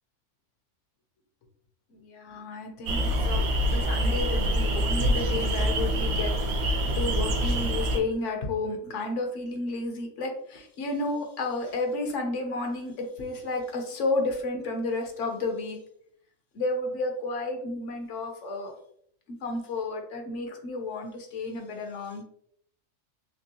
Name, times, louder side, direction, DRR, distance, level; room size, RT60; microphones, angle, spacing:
voice 1, 1.9-15.8 16.5-18.7 19.4-22.2, left 2 dB, 70° left, 4 dB, 1.0 m, -32 dB
sound 1, 2.9-8.0, equal, 65° right, 0.8 m, -25 dB
3.5 x 3.0 x 2.6 m, 0.67 s
omnidirectional pair, 1.4 m